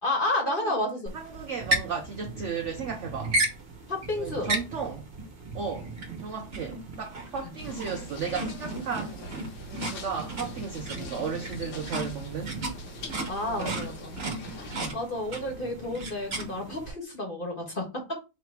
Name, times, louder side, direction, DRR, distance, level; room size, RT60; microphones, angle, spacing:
voice 1, 0.0-1.1 3.9-4.5 13.3-14.1 14.5-18.0, left 1 dB, 30° left, 1.3 m, -31 dB
sound 1, 1.1-16.9, right 2 dB, 40° right, 1.2 m, -35 dB
voice 2, 1.1-3.4 4.2-5.1 5.5-12.6 13.5-13.9 14.7-15.0, right 5 dB, 70° right, 0.7 m, -35 dB
sound 2, 7.6-14.9, left 1 dB, 85° left, 1.9 m, -43 dB
3.8 x 3.0 x 4.5 m
omnidirectional pair, 2.0 m